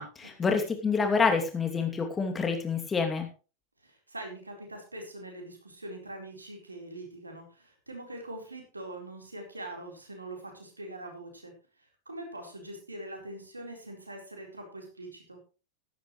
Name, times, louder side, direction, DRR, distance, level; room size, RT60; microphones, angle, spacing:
voice 1, 0.0-3.3, left 5 dB, 15° left, 4 dB, 2.7 m, -27 dB
voice 2, 3.8-11.5 11.8-15.4, right 1 dB, 80° right, 2 dB, 4.3 m, -43 dB
14.5 x 12.0 x 3.2 m, 0.34 s
figure-of-eight pair, 90°, 0 cm